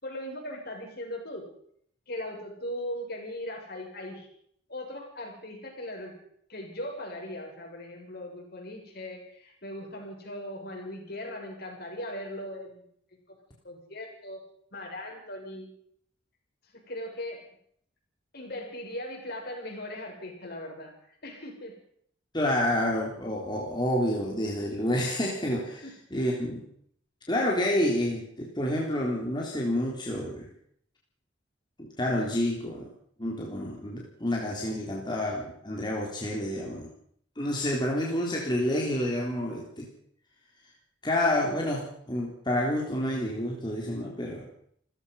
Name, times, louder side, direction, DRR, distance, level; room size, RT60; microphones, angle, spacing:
voice 1, 0.0-1.5 2.1-4.3 4.7-6.2 6.5-12.8 13.3-13.4 13.6-14.4 14.7-15.7 16.7-17.4 18.3-21.8 25.8-26.0, left 1 dB, 50° left, 1 dB, 7.4 m, -39 dB
voice 2, 22.3-25.8 26.1-26.6 27.3-30.5 31.8-32.9 33.2-36.9 37.4-39.9 41.0-44.5, left 1 dB, 20° left, -2 dB, 3.7 m, -29 dB
29.0 x 15.5 x 5.7 m, 0.66 s
head